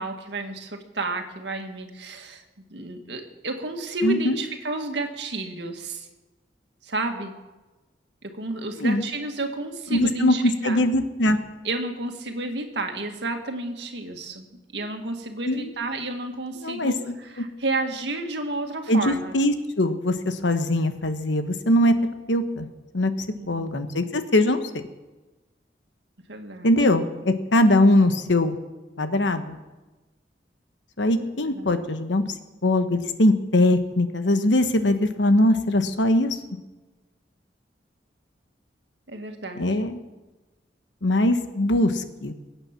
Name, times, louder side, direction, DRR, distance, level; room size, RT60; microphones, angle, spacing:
voice 1, 0.0-2.4 2.7-6.1 6.8-7.3 8.2-10.8 11.6-17.0 17.4-19.3 23.3-23.8 26.3-26.7 31.4-31.8 39.1-39.9, right 2 dB, 70° right, 4 dB, 1.9 m, -31 dB
voice 2, 4.0-4.4 8.8-9.0 9.9-11.4 15.4-15.7 16.6-17.1 18.9-21.9 22.3-22.7 22.9-23.1 23.5-24.8 26.6-28.6 29.0-29.6 31.0-32.2 32.6-36.4 39.6-40.0 41.0-42.3, left 1 dB, 90° left, 8 dB, 1.2 m, -21 dB
23.0 x 8.9 x 5.9 m, 1.2 s
head